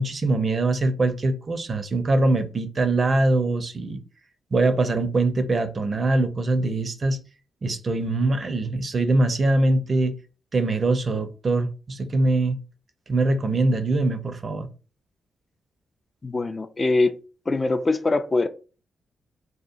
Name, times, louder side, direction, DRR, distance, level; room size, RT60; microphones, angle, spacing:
voice 1, 0.0-4.0 4.5-7.2 7.6-10.2 10.5-12.6 13.1-14.7, right 2 dB, 50° right, 0.4 m, -23 dB
voice 2, 16.2-17.2 17.5-18.5, left 3 dB, 35° left, 0.3 m, -23 dB
2.8 x 2.0 x 2.4 m
supercardioid pair, 45°, 0 cm